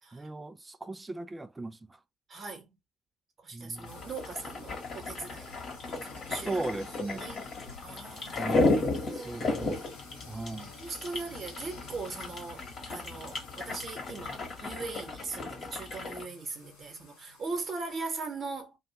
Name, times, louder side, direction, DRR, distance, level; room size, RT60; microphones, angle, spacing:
voice 1, 0.1-2.0 3.5-4.0 6.4-7.3 8.4-8.8 9.1-9.8 10.2-10.7, right 2 dB, 20° right, 0.5 m, -37 dB
voice 2, 2.3-2.8 3.4-5.6 5.8-6.6 7.1-7.5 7.8-8.7 9.0-9.5 10.7-18.8, right 4 dB, 45° right, 1.2 m, -40 dB
sound 1, 3.8-18.0, left 4 dB, 80° left, 0.9 m, -52 dB
sound 2, 3.8-16.2, left 3 dB, 45° left, 1.2 m, -34 dB
2.6 x 2.4 x 2.9 m
figure-of-eight pair, 45°, 0 cm